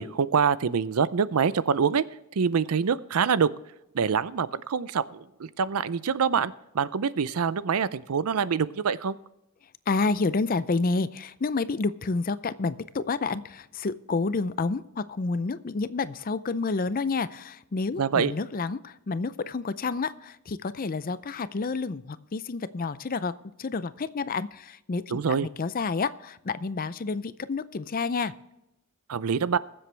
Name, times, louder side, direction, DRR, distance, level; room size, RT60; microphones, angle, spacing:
voice 1, 0.0-2.1 2.4-3.5 3.9-9.2 18.0-18.3 25.1-25.5 29.1-29.6, right 6 dB, 80° right, 17 dB, 0.5 m, -25 dB
voice 2, 9.9-28.3, left 4 dB, 40° left, 15 dB, 0.5 m, -29 dB
21.5 x 7.9 x 3.3 m, 0.90 s
head